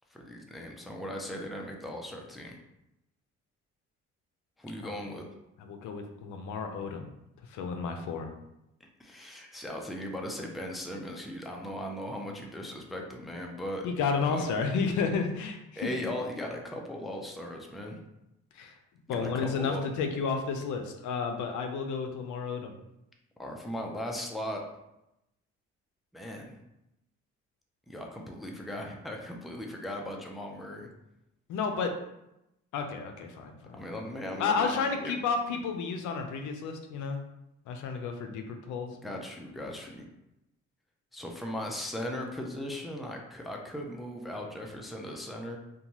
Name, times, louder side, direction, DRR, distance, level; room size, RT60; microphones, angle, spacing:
voice 1, 0.1-2.6 4.6-5.3 9.0-13.9 14.3-14.5 15.8-18.0 19.1-19.8 23.4-24.6 26.1-26.6 27.9-30.9 33.7-35.1 39.0-40.0 41.1-45.6, left 1 dB, ahead, 1 dB, 0.4 m, -38 dB
voice 2, 5.6-7.1 7.5-8.3 13.8-15.9 18.5-18.7 19.1-22.7 31.5-31.9 32.7-33.8 34.4-37.2 37.7-38.9, left 5 dB, 80° left, 5 dB, 0.5 m, -31 dB
2.6 x 2.2 x 2.9 m, 0.87 s
cardioid pair, 90°, 30 cm